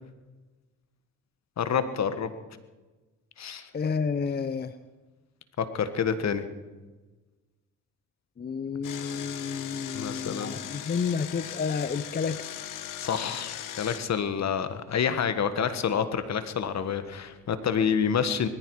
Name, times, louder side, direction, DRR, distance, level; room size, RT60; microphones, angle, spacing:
voice 1, 1.6-2.3 3.4-3.7 5.6-6.5 9.9-10.6 13.0-18.5, left 7 dB, 50° left, 11 dB, 1.5 m, -28 dB
voice 2, 3.7-4.7 8.4-12.5, left 5 dB, 30° left, 13 dB, 0.7 m, -30 dB
Engine, 8.8-14.0, left 11 dB, 70° left, 1.2 m, -39 dB
20.0 x 14.5 x 4.8 m, 1.2 s
supercardioid pair, 70°, 34 cm